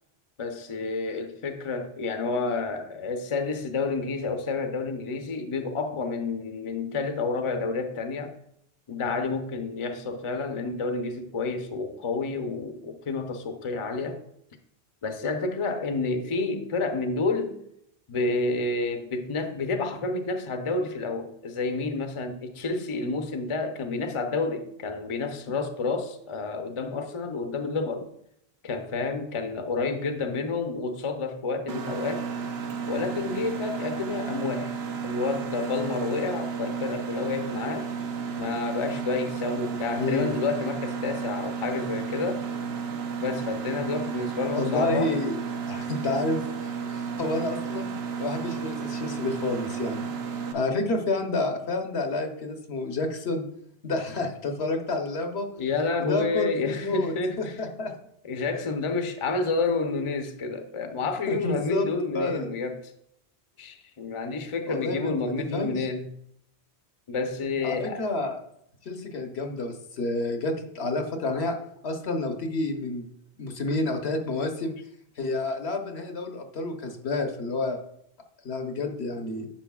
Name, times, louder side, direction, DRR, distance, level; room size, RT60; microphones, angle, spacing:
voice 1, 0.4-8.3 8.9-14.2 15.0-17.6 18.1-28.1 28.6-32.3 32.9-34.8 35.0-37.9 38.4-42.4 43.2-45.1 55.6-57.6 58.2-62.9 63.6-66.1 67.1-68.0, left 3 dB, 35° left, 0.6 m, -29 dB
Mechanisms, 31.7-50.5, right 6 dB, 70° right, 1.0 m, -33 dB
voice 2, 40.0-40.3 44.5-45.4 45.7-47.9 48.2-50.1 50.5-53.5 53.8-55.5 56.0-58.0 61.3-62.5 64.7-65.9 67.6-68.4 68.8-71.6 71.8-73.1 73.4-74.7 75.2-77.8 78.4-79.5, left 2 dB, 75° left, 1.2 m, -29 dB
10.0 x 6.4 x 2.3 m
omnidirectional pair, 1.1 m